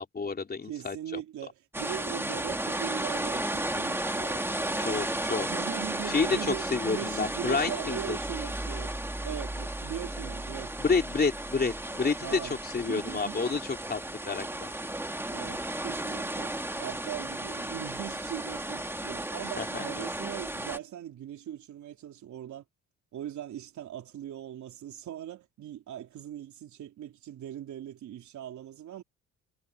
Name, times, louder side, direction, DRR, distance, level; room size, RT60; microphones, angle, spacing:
voice 1, 0.0-1.2 4.8-5.5 6.1-8.2 10.8-14.0 14.3-14.7 19.5-20.1, left 4 dB, 30° left, 3.4 m, -30 dB
voice 2, 0.6-5.1 5.4-8.9 9.2-10.8 12.2-12.6 12.9-13.4 15.2-22.6 23.1-29.0, right 11 dB, 75° right, 3.6 m, -40 dB
sound 1, 1.7-20.8, right 1 dB, 10° right, 1.9 m, -34 dB
cardioid pair, 90°, 30 cm